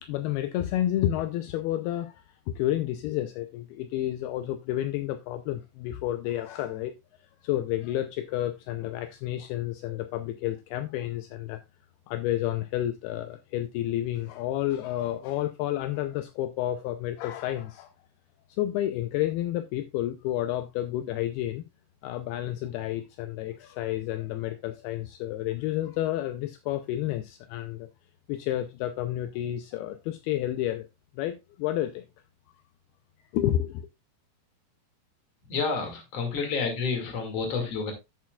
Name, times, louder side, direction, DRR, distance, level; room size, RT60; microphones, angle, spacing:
voice 1, 0.0-6.9 7.4-11.6 12.1-17.9 18.5-21.6 22.0-27.9 28.3-30.9 31.1-32.0 33.3-33.9, left 13 dB, 80° left, 2.5 m, -30 dB
voice 2, 35.5-37.9, left 4 dB, 45° left, 2.8 m, -29 dB
10.5 x 8.5 x 2.4 m
omnidirectional pair, 4.7 m